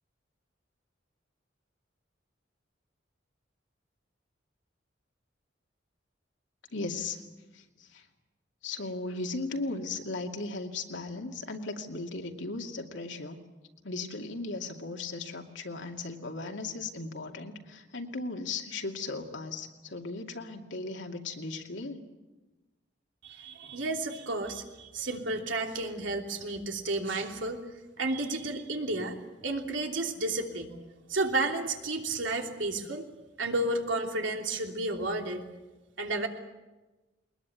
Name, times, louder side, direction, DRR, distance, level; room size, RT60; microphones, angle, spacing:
voice 1, 6.7-7.2 7.5-8.0 8.6-13.4 13.8-22.0 23.6-23.8, left 3 dB, 80° left, 3 dB, 2.5 m, -37 dB
voice 2, 23.2-27.6 28.0-30.8 31.1-33.1 33.4-35.5 36.0-36.3, right 2 dB, 90° right, 3 dB, 3.1 m, -32 dB
22.0 x 20.5 x 9.3 m, 1.1 s
head